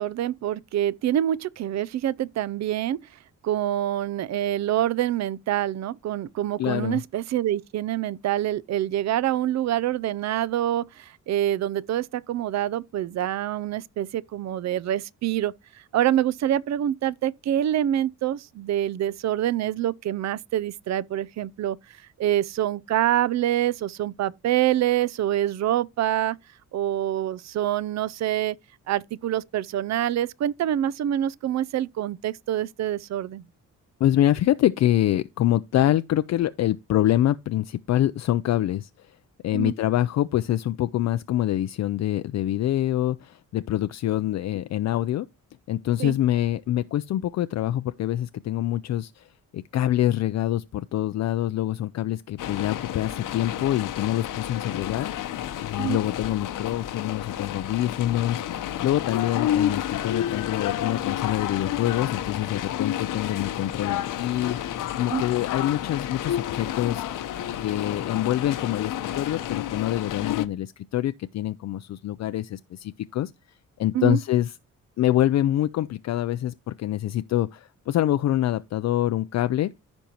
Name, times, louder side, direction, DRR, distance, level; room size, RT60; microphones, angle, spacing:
voice 1, 0.0-3.0 3.4-15.5 15.9-21.8 22.2-26.4 26.7-28.6 28.9-33.4 39.5-39.7 46.0-46.1 55.8-56.0 65.1-65.2 73.9-74.2, right 12 dB, 60° right, 0.5 m, -26 dB
voice 2, 6.6-7.0 34.0-39.1 39.4-45.3 45.7-49.3 49.5-55.1 55.6-64.6 64.9-67.0 67.6-73.3 73.8-74.6 75.0-79.7, left 13 dB, 60° left, 0.4 m, -25 dB
sound 1, 52.4-70.5, left 11 dB, 75° left, 0.9 m, -30 dB
15.0 x 5.3 x 2.9 m
cardioid pair, 145°, 32 cm